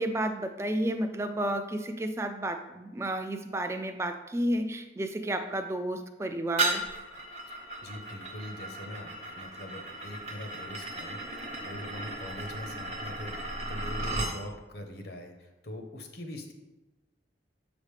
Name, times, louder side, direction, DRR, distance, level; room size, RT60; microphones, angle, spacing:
voice 1, 0.0-6.8, right 1 dB, 15° right, 6 dB, 0.3 m, -31 dB
sound 1, 6.6-14.4, right 2 dB, 35° right, 0.9 m, -35 dB
voice 2, 7.8-16.5, left 1 dB, 60° left, 4 dB, 0.9 m, -42 dB
7.3 x 5.1 x 3.3 m, 1.0 s
head